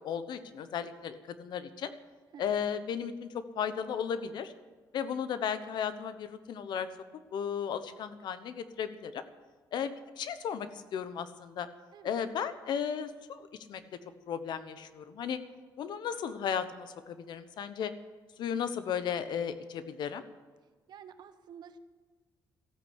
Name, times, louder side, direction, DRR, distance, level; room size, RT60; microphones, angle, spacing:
voice 1, 0.0-1.9 2.4-4.5 4.9-6.9 7.3-9.2 9.7-11.7 12.0-13.8 14.3-15.4 15.8-17.9 18.4-20.2, left 8 dB, 75° left, 11 dB, 1.1 m, -35 dB
voice 2, 2.3-2.6 11.9-12.2 20.9-21.8, right 7 dB, 70° right, 10 dB, 1.1 m, -50 dB
14.5 x 8.6 x 8.2 m, 1.4 s
cardioid pair, 100°, 8 cm